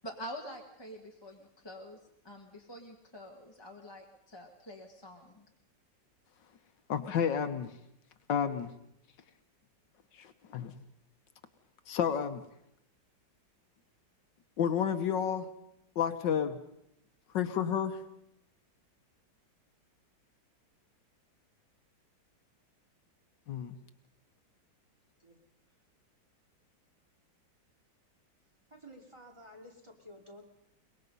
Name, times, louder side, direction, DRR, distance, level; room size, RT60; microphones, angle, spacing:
voice 1, 0.0-2.0 2.2-5.5, equal, 15° left, 0 dB, 1.5 m, -46 dB
voice 2, 6.9-7.7 8.3-8.7 10.1-10.8 11.9-12.4 14.6-15.5 16.0-16.6 17.3-18.0 23.5-23.8, left 8 dB, 75° left, 9 dB, 1.7 m, -31 dB
voice 3, 28.7-30.4, equal, 15° right, 0 dB, 2.7 m, -52 dB
23.5 x 21.0 x 5.4 m, 0.78 s
omnidirectional pair, 2.0 m